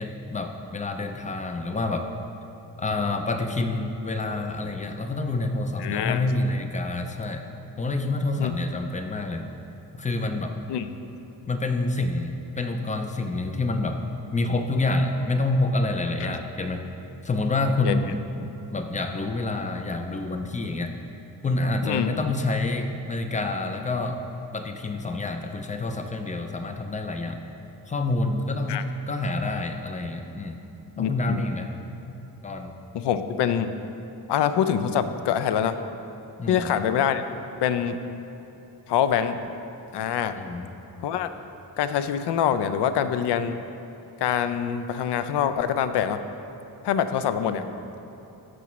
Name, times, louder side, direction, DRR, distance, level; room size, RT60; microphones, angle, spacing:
voice 1, 0.0-2.1 2.8-7.5 7.8-9.5 10.0-10.6 11.5-14.0 14.3-16.9 17.2-20.9 21.4-24.2 24.5-27.4 27.9-30.6 31.0-31.7 32.1-32.2 32.4-32.7 36.4-36.7 40.4-40.7 47.4-47.8, left 2 dB, 20° left, 5 dB, 0.3 m, -28 dB
voice 2, 5.8-6.3 8.4-8.5 10.7-10.9 16.2-16.3 17.8-18.0 21.8-22.1 28.7-28.8 31.0-31.4 32.9-33.8 34.3-35.8 36.5-37.2 37.6-38.0 38.9-39.4 39.9-40.4 41.0-41.3 41.8-43.6 44.2-46.2 46.8-47.6, left 9 dB, 75° left, 10 dB, 0.5 m, -25 dB
14.0 x 6.1 x 3.0 m, 2.9 s
wide cardioid pair, 165°, 41 cm